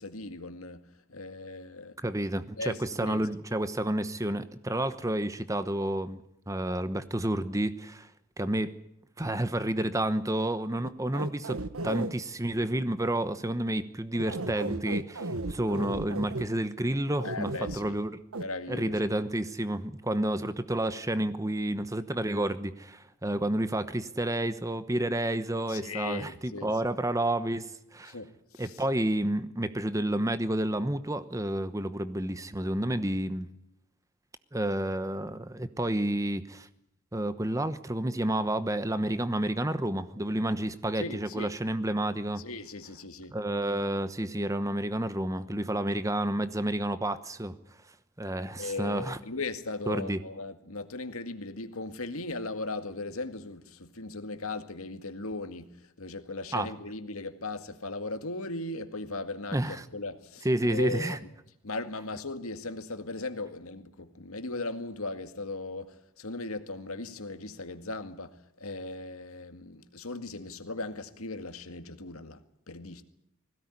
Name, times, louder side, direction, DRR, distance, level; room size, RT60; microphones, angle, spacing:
voice 1, 0.0-1.9 2.6-3.2 17.2-18.0 18.4-18.9 25.7-26.8 28.1-28.8 40.9-41.5 42.4-43.4 48.6-61.2 61.6-72.4 72.7-73.0, left 2 dB, 80° left, 2.0 m, -38 dB
voice 2, 2.0-6.2 6.5-8.1 8.4-8.8 9.2-18.2 18.7-28.1 28.6-33.5 34.5-36.7 37.1-42.4 43.3-47.5 48.2-49.2 49.9-50.2 56.5-56.7 59.5-59.8 60.4-61.2, right 1 dB, 15° right, 1.0 m, -30 dB
sound 1, 10.8-12.1 14.1-16.5 17.2-17.8 18.3-18.4, right 2 dB, 80° right, 1.5 m, -34 dB
21.0 x 17.0 x 9.8 m
head